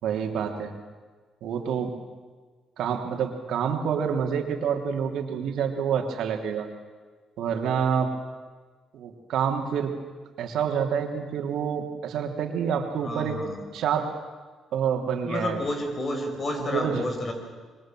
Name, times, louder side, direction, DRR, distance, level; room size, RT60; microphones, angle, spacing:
voice 1, 0.0-0.7 1.4-1.9 2.8-6.7 7.4-8.1 8.9-9.9 10.4-13.4 13.7-14.1 14.7-15.6 16.7-17.1, right 7 dB, 75° right, 4 dB, 3.2 m, -27 dB
voice 2, 13.0-13.7 15.0-17.3, left 1 dB, 40° left, 4 dB, 5.8 m, -31 dB
26.5 x 23.5 x 7.7 m, 1.5 s
cardioid pair, 90°, 0 cm